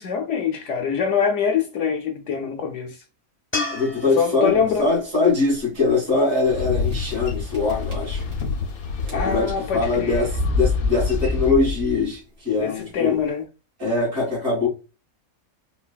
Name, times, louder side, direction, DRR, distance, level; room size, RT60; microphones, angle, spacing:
voice 1, 0.0-3.0 4.2-4.9 9.1-10.3 12.6-13.4, left 6 dB, 65° left, 0.8 m, -24 dB
sound 1, 3.5-6.8 10.0-10.1, left 3 dB, 15° left, 0.4 m, -34 dB
voice 2, 3.7-8.3 9.1-13.2 13.8-14.7, left 3 dB, 60° right, 2.0 m, -22 dB
sound 2, 4.5-4.9 5.5-5.6 5.9-6.0 6.9-7.3 7.5-8.7 9.0-9.5 10.2-12.2, left 2 dB, 80° right, 1.9 m, -26 dB
Boat Water vehicle, 6.4-11.5, left 4 dB, 90° left, 1.1 m, -29 dB
3.9 x 2.3 x 2.3 m
omnidirectional pair, 1.5 m